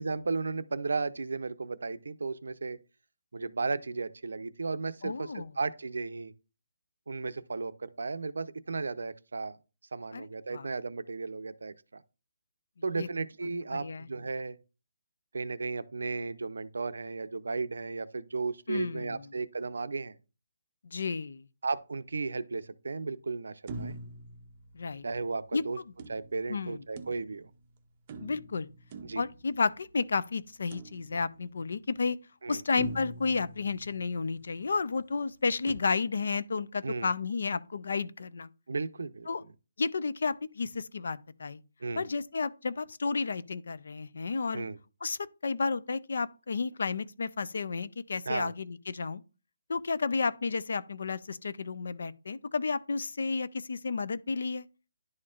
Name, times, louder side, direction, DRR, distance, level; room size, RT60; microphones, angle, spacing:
voice 1, 0.0-2.8 3.3-6.3 7.1-9.6 9.9-12.0 12.8-14.6 15.3-20.2 21.6-24.0 25.0-25.8 26.1-27.5 29.0-29.2 32.4-32.6 36.8-37.1 38.7-39.3 41.8-42.1 44.5-44.8 48.3-48.5, right 4 dB, 80° right, 0.6 m, -34 dB
voice 2, 5.0-5.5 10.1-10.3 10.5-10.7 13.0-13.1 13.7-14.1 18.7-19.2 20.8-21.4 24.7-25.0 25.5-25.6 26.5-26.8 28.2-28.7 29.2-32.2 32.5-38.5 39.3-39.4 39.8-41.6 42.0-44.7 45.0-49.2 49.7-54.7, left 4 dB, 60° left, 0.5 m, -32 dB
sound 1, 23.7-25.3 26.0-27.6 28.1-30.0 30.7-31.6 32.1-32.2 32.8-34.4 35.7-35.8, right 3 dB, 25° right, 0.6 m, -44 dB
11.0 x 4.3 x 2.5 m
hypercardioid pair, 175°, 0 cm